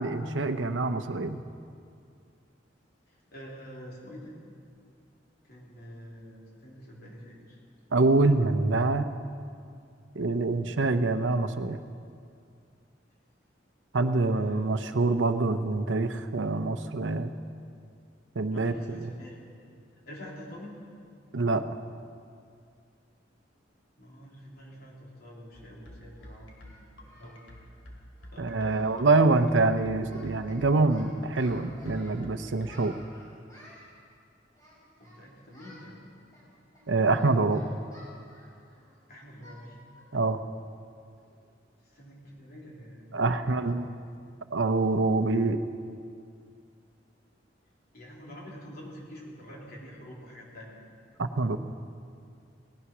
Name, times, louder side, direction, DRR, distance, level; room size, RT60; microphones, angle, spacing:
voice 1, 0.0-1.4 7.9-9.1 10.2-11.8 13.9-17.3 18.4-19.1 21.3-21.6 28.4-33.0 36.9-37.6 40.1-40.4 43.1-43.9 44.5-45.6 51.2-51.6, right 3 dB, 85° right, 10 dB, 0.7 m, -25 dB
voice 2, 3.1-4.3 5.4-7.6 14.1-14.7 18.5-19.4 20.0-20.8 24.0-26.6 27.1-27.4 28.3-29.1 35.0-36.0 39.1-39.8 41.8-44.0 47.9-50.8, equal, 55° left, -3 dB, 3.4 m, -47 dB
Singing, 25.4-25.5 26.2-27.4 27.7-27.9 28.2-28.3 28.6-28.9 29.2-29.4 29.7-30.6 30.9-32.2 32.6-33.9 34.5-35.2 35.5-35.8 36.3-38.9 39.4-39.6 40.0-40.1 40.6-40.7 41.1-41.4, equal, 20° left, 5.0 m, -54 dB
sound 1, 25.5-32.8, left 1 dB, 75° left, 2.7 m, -47 dB
18.0 x 11.5 x 6.1 m, 2.3 s
head